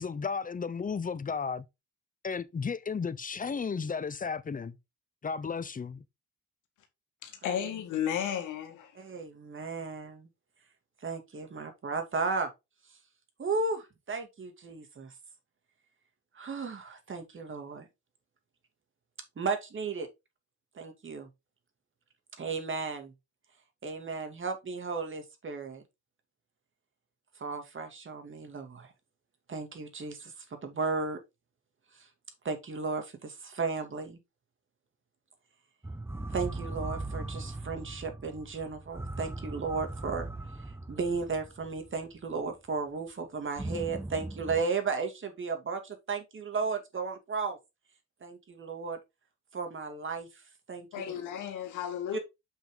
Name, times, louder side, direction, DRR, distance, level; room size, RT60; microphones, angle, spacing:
voice 1, 0.0-1.6 2.2-4.8 5.2-6.0, left 5 dB, 25° left, 0.8 m, -34 dB
voice 2, 7.2-8.9 50.9-52.2, left 9 dB, 85° left, 1.7 m, -33 dB
voice 3, 8.9-10.3 11.0-12.5 13.4-15.1 16.4-17.8 19.4-20.1 20.7-21.3 22.4-23.1 23.8-25.8 27.4-28.9 29.5-30.3 30.6-31.2 32.0-32.1 32.4-34.2 36.3-40.3 40.9-47.6 48.2-49.0 49.5-50.3 50.7-51.1, right 4 dB, 40° right, 2.6 m, -34 dB
sound 1, 35.8-42.3 43.6-44.6, right 2 dB, 10° right, 0.6 m, -39 dB
7.2 x 5.9 x 3.9 m
cardioid pair, 90°, 30 cm